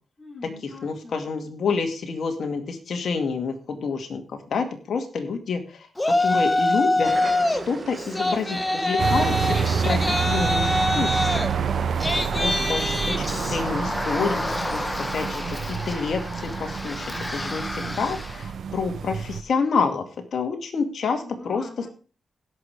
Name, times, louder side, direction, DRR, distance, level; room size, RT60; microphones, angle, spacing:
voice 1, 0.2-1.2 21.2-21.9, left 3 dB, 45° left, -6 dB, 7.8 m, -43 dB
voice 2, 0.8-4.2 4.5-7.1 7.5-11.5 12.2-14.9 15.1-15.4 15.7-17.1 17.3-20.0 20.3-21.6, left 5 dB, 70° left, 4 dB, 2.2 m, -28 dB
Yell, 6.0-7.6 8.0-18.4, left 2 dB, 20° left, 1.4 m, -26 dB
sound 1, 7.0-13.7, right 4 dB, 55° right, 1.4 m, -38 dB
sound 2, 9.0-19.4, right 7 dB, 75° right, 0.9 m, -28 dB
16.0 x 6.2 x 4.8 m, 0.38 s
cardioid pair, 60°, 0 cm